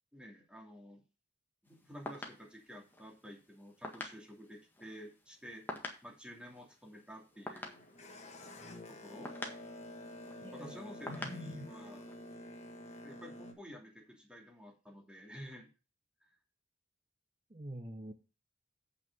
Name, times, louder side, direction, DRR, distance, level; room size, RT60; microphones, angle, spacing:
voice 1, 0.1-1.0 1.6-7.8 8.9-9.3 10.5-12.1 13.0-15.7 16.3-16.4, equal, 5° right, 1 dB, 2.7 m, -50 dB
sound 1, 1.7-12.3, left 1 dB, 10° left, 1.6 m, -49 dB
Boat Water vehicle, 7.3-13.5, left 1 dB, 35° left, 1.9 m, -49 dB
voice 2, 10.4-10.8 17.5-18.1, right 1 dB, 25° right, 6 dB, 0.8 m, -45 dB
8.2 x 6.2 x 5.3 m, 0.32 s
head